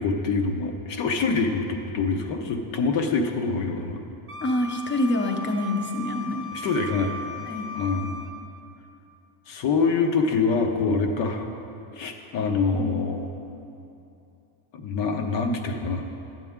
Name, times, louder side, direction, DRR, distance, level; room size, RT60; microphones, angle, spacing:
voice 1, 0.0-4.0 6.5-7.1 7.7-8.3 9.5-11.5 11.9-13.4 14.7-16.1, left 4 dB, 65° left, 4 dB, 1.0 m, -25 dB
Wind instrument woodwind instrument, 4.3-8.3, left 1 dB, 25° right, 0.7 m, -37 dB
voice 2, 4.4-6.5 7.5-7.7, left 1 dB, 25° left, 4 dB, 0.7 m, -26 dB
10.5 x 7.6 x 3.6 m, 2.8 s
cardioid pair, 130°, 48 cm